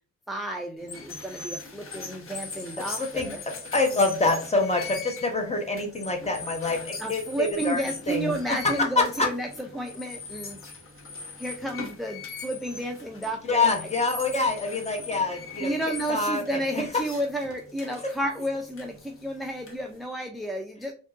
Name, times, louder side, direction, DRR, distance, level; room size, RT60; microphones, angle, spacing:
voice 1, 0.3-3.4 7.0-10.6 11.4-13.9 15.6-20.9, right 1 dB, ahead, 2 dB, 0.4 m, -32 dB
sound 1, 0.8-20.1, left 4 dB, 45° left, 1.0 m, -41 dB
voice 2, 3.7-7.8 8.1-8.3 8.6-9.3 13.5-15.7 16.1-16.4, left 3 dB, 20° left, 3 dB, 1.0 m, -25 dB
3.5 x 2.6 x 2.4 m, 0.39 s
cardioid pair, 90°, 30 cm